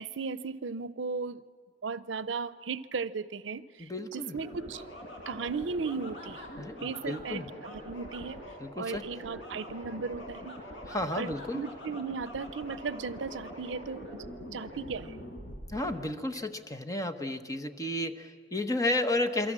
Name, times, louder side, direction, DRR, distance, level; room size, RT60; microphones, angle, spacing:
voice 1, 0.0-1.4 1.8-4.8 5.3-6.4 6.8-8.4 8.8-10.6 11.1-14.0 14.4-15.2, right 4 dB, 75° right, 16 dB, 0.6 m, -36 dB
voice 2, 3.8-4.4 6.6-7.5 8.6-9.0 10.9-11.6 15.7-19.5, left 1 dB, 20° left, 8 dB, 1.1 m, -32 dB
sound 1, 4.3-16.0, equal, 75° left, 5.2 m, -44 dB
28.0 x 23.5 x 7.5 m, 2.1 s
head